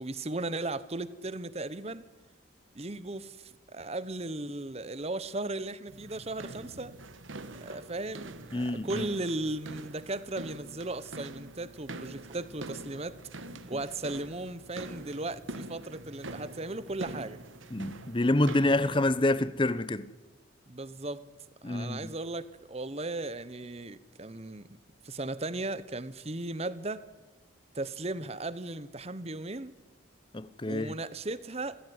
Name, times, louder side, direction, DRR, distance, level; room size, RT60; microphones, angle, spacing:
voice 1, 0.0-2.1 2.7-7.0 7.5-13.2 13.7-17.4 20.7-21.3 21.6-24.8 25.0-27.0 27.7-29.7 30.7-31.8, right 2 dB, 30° right, 1.0 m, -36 dB
sound 1, 5.9-19.3, right 2 dB, 75° right, 1.5 m, -44 dB
voice 2, 8.5-9.0 17.7-20.1 21.6-22.1 30.3-30.9, left 1 dB, 25° left, 0.7 m, -27 dB
25.5 x 15.5 x 9.6 m
head